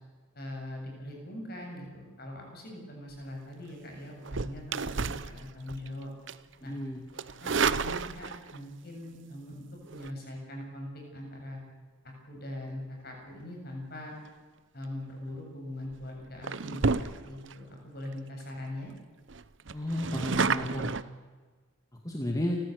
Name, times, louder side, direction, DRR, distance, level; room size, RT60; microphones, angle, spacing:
voice 1, 0.3-6.1 6.6-6.7 7.4-9.6 9.9-11.6 12.3-14.1 14.7-18.9, left 1 dB, 50° left, 1 dB, 7.5 m, -41 dB
sound 1, 4.2-5.9 6.3-6.5 7.2-8.6 9.9-10.1 15.1-15.4 15.9-16.1 16.4-17.5 18.1-18.2 18.4-18.5 18.8-18.9 19.3-21.0, right 4 dB, 65° right, 0.8 m, -31 dB
voice 2, 6.6-7.0 19.7-20.9 22.0-22.6, left 1 dB, 15° left, 1 dB, 2.1 m, -32 dB
30.0 x 14.5 x 8.1 m, 1.4 s
head